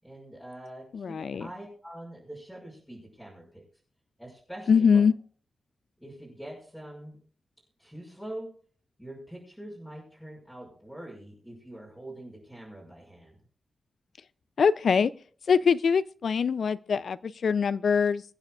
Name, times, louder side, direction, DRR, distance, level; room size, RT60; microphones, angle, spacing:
voice 1, 0.0-3.6 4.2-5.0 6.0-7.2 7.8-8.5 9.0-13.4, right 1 dB, ahead, -5 dB, 6.2 m, -44 dB
voice 2, 0.9-1.5 4.7-5.1 14.6-15.1 15.5-18.2, left 6 dB, 70° left, 17 dB, 0.5 m, -23 dB
24.5 x 9.0 x 2.5 m, 0.43 s
wide cardioid pair, 135°, 0 cm